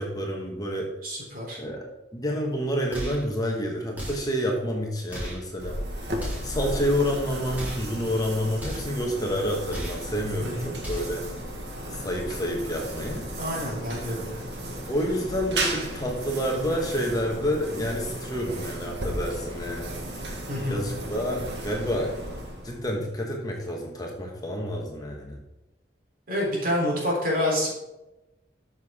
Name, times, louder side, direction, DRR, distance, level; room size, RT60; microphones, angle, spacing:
voice 1, 0.0-0.9 1.6-5.8 6.4-11.2 11.9-13.2 14.9-20.2 20.7-22.1 22.6-25.4, equal, 20° left, 0 dB, 1.3 m, -29 dB
voice 2, 1.0-1.6 10.4-10.7 13.4-14.4 20.5-20.8 26.3-27.7, left 1 dB, 50° right, -3 dB, 3.6 m, -28 dB
sound 1, 2.9-3.3 3.9-4.4 5.1-5.5 6.1-6.6 7.5-7.9 8.6-9.0 9.7-10.1 10.8-11.2, equal, 10° right, 3.7 m, -35 dB
sound 2, 5.6-23.0, right 1 dB, 65° right, 1.6 m, -35 dB
13.0 x 6.3 x 3.7 m, 0.98 s
head